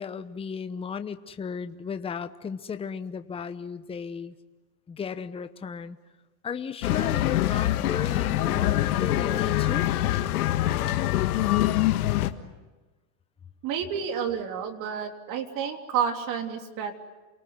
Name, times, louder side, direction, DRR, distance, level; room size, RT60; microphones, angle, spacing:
voice 1, 0.0-4.3 4.9-6.0 6.4-9.9, left 6 dB, 15° left, 10 dB, 0.9 m, -35 dB
sound 1, 6.8-12.3, left 14 dB, 80° left, 1.7 m, -24 dB
voice 2, 13.6-16.9, right 7 dB, 45° right, 5 dB, 3.3 m, -30 dB
29.0 x 19.0 x 9.6 m, 1.2 s
supercardioid pair, 120°, 44 cm